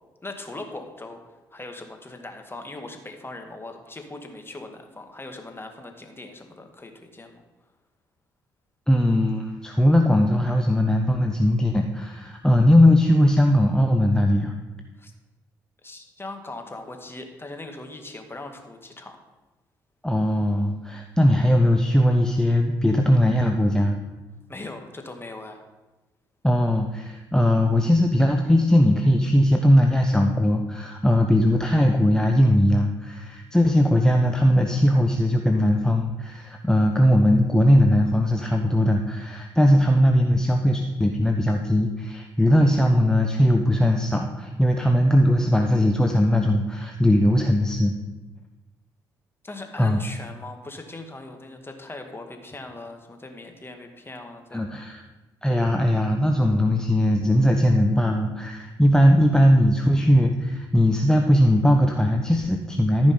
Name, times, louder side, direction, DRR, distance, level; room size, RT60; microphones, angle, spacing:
voice 1, 0.2-1.2 1.5-7.4 15.0-15.1 15.8-19.2 24.5-25.6 49.4-54.6, left 2 dB, 20° left, 4 dB, 1.9 m, -39 dB
voice 2, 8.9-14.5 20.0-24.0 26.4-47.9 49.8-50.0 54.5-55.0 55.4-63.1, equal, 5° left, 3 dB, 1.0 m, -19 dB
13.5 x 5.2 x 5.5 m, 1.1 s
hypercardioid pair, 45°, 11 cm